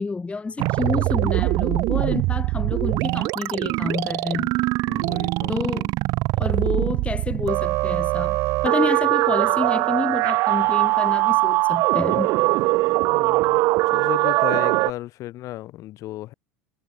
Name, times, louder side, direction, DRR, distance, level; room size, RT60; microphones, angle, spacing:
voice 1, 0.0-4.5 5.5-5.9 6.4-12.3, left 4 dB, 15° left, 2.3 m, -28 dB
sound 1, 0.6-14.9, right 21 dB, 55° right, 1.3 m, -22 dB
voice 2, 4.9-5.5 13.1-13.6 13.9-16.3, left 15 dB, 50° left, 3.8 m, -34 dB
figure-of-eight pair, 75°, 7 cm